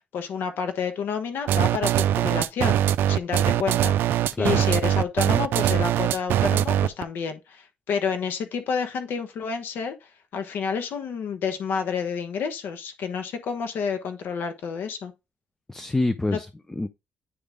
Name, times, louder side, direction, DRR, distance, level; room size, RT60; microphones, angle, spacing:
voice 1, 0.1-2.8 3.1-9.9 10.3-15.1 16.3-16.4, left 6 dB, 75° left, 1.1 m, -29 dB
sound 1, 1.5-7.0, right 11 dB, 80° right, 0.4 m, -22 dB
voice 2, 4.3-4.6 15.7-16.9, left 2 dB, 15° left, 0.5 m, -26 dB
9.7 x 3.4 x 3.6 m
cardioid pair, 85°, 4 cm